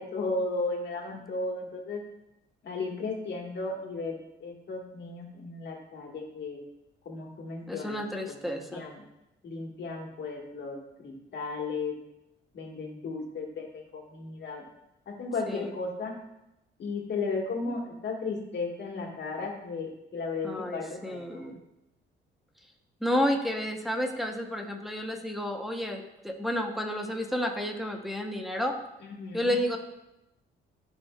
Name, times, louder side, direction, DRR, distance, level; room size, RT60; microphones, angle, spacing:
voice 1, 0.0-2.0 2.6-6.6 7.0-8.0 8.3-9.0 9.4-11.9 12.5-14.6 15.0-16.1 16.8-21.5 29.0-29.6, left 3 dB, 60° left, 0 dB, 1.7 m, -35 dB
voice 2, 7.7-8.8 15.5-15.7 20.4-21.6 23.0-28.8 29.3-29.8, left 1 dB, ahead, 2 dB, 0.9 m, -31 dB
12.0 x 4.5 x 2.4 m, 0.90 s
cardioid pair, 90°, 20 cm